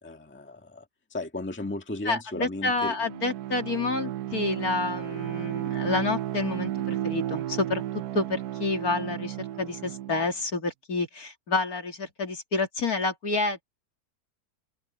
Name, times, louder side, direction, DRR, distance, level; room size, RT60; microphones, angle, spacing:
voice 1, 0.0-2.9, left 2 dB, 5° left, 1.5 m, -35 dB
voice 2, 2.0-7.8 8.1-13.6, left 3 dB, 55° left, 3.1 m, -29 dB
Bowed string instrument, 2.6-10.3, right 12 dB, 70° right, 1.2 m, -33 dB
open air
omnidirectional pair, 1.9 m